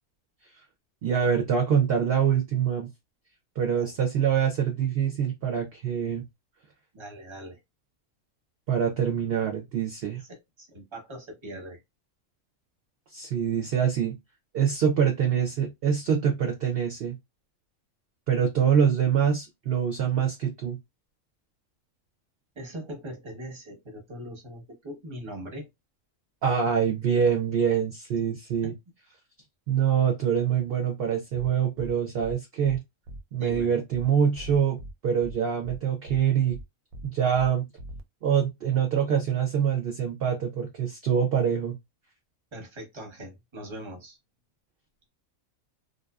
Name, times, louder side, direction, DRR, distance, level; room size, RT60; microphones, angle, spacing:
voice 1, 1.0-2.9 3.6-6.2 8.7-10.2 13.1-14.2 14.5-17.2 18.3-20.8 26.4-28.7 29.7-32.8 33.3-34.8 35.0-36.6 37.0-37.7 38.2-41.8, right 8 dB, 60° right, 0.7 m, -25 dB
voice 2, 6.9-7.6 10.3-11.8 22.6-25.7 28.6-28.7 33.4-33.8 42.5-44.2, equal, 25° right, 0.8 m, -41 dB
sound 1, 31.3-31.5 31.8-31.9 32.2-32.3 32.6-32.8 33.1-33.2 33.5-33.6 33.9-34.1 34.3-34.9 35.2-35.3 35.6-35.8 36.1-36.2 36.5-36.6 36.9-37.1 37.3-37.5 37.8-38.0, equal, 85° right, 1.0 m, -40 dB
2.6 x 2.2 x 2.3 m
omnidirectional pair, 1.5 m